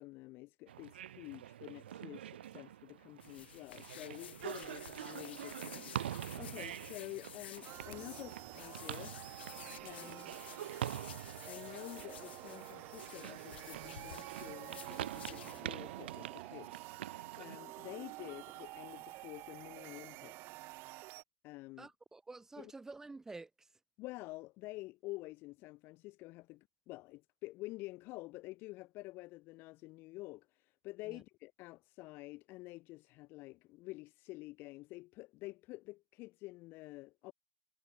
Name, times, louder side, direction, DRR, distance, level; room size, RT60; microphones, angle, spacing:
voice 1, 0.0-9.2 9.8-10.4 11.4-20.6 21.4-21.9 22.6-22.7 24.0-37.3, left 21 dB, 45° left, 0.9 m, -49 dB
sound 1, 0.7-17.6, right 11 dB, 90° right, 0.5 m, -46 dB
sound 2, 3.2-15.6, left 10 dB, 90° left, 3.3 m, -53 dB
sound 3, 7.6-21.2, right 21 dB, 40° right, 0.7 m, -49 dB
voice 2, 21.8-23.7 31.0-31.2, right 3 dB, 10° right, 1.8 m, -50 dB
supercardioid pair, 135°, 6 cm